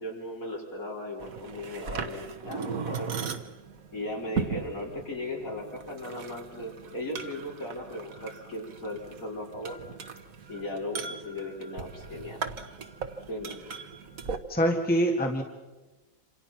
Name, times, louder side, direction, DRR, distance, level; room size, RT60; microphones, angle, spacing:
voice 1, 0.0-3.1 3.9-9.8 10.5-12.4 13.3-13.6, left 1 dB, 50° left, -2 dB, 5.3 m, -37 dB
sound 1, 1.2-14.4, right 5 dB, 55° right, 1.6 m, -38 dB
voice 2, 14.5-15.4, equal, 5° left, 1 dB, 1.9 m, -24 dB
27.5 x 27.0 x 5.9 m, 1.2 s
omnidirectional pair, 1.9 m